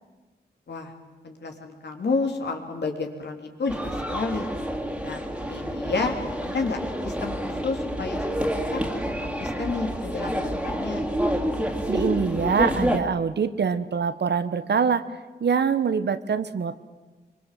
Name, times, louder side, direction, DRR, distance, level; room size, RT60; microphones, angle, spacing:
voice 1, 1.2-4.4 5.0-6.1 6.4-6.8 7.0-8.8 9.2-11.1, left 4 dB, 75° left, 3 dB, 3.6 m, -30 dB
sound 1, 3.7-13.0, equal, 5° right, 2.9 m, -28 dB
voice 2, 11.9-15.0 15.4-16.8, right 6 dB, 70° right, 12 dB, 1.2 m, -24 dB
24.5 x 24.5 x 7.7 m, 1.2 s
wide cardioid pair, 75°, 18 cm